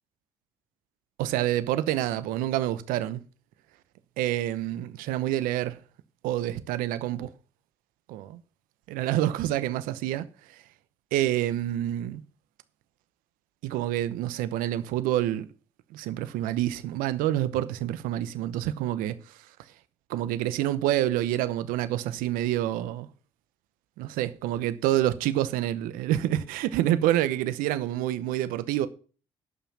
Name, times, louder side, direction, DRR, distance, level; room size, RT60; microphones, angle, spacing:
voice 1, 1.2-3.2 4.2-5.8 6.2-7.3 8.1-8.4 8.9-10.3 11.1-12.2 13.6-15.4 15.9-19.1 20.1-23.1 24.0-28.9, right 13 dB, 80° right, 0.9 m, -27 dB
11.5 x 5.8 x 7.5 m
hypercardioid pair, 50°, 14 cm